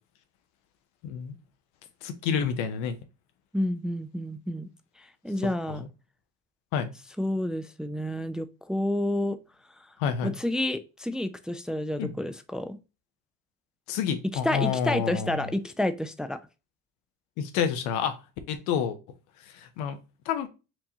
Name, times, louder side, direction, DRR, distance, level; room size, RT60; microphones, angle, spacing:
voice 1, 1.0-1.3 2.0-3.0 5.4-5.9 6.7-6.9 10.0-10.3 12.0-12.1 13.9-15.5 17.4-18.2 18.5-19.0 19.5-20.0 20.3-20.5, left 7 dB, 80° left, 0.7 m, -29 dB
voice 2, 3.5-4.7 5.0-5.8 7.2-9.4 10.2-12.8 14.4-16.4, left 1 dB, ahead, 0.3 m, -29 dB
4.5 x 2.7 x 2.8 m
supercardioid pair, 80°, 30 cm